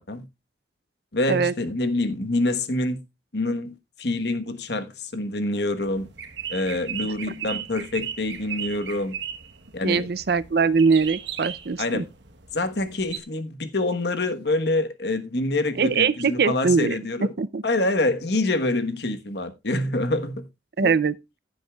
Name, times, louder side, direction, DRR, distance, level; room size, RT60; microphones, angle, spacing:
voice 1, 1.1-3.0 3.3-6.1 6.5-9.1 9.7-10.1 11.8-12.1 12.5-17.3 17.6-20.5 20.8-20.9, left 2 dB, 60° left, 1.2 m, -26 dB
sound 1, 5.8-13.2, right 8 dB, 70° right, 1.2 m, -36 dB
voice 2, 9.8-12.0 15.8-16.9 17.4-17.6 20.8-21.1, right 5 dB, 55° right, 0.5 m, -22 dB
15.5 x 7.9 x 2.3 m
head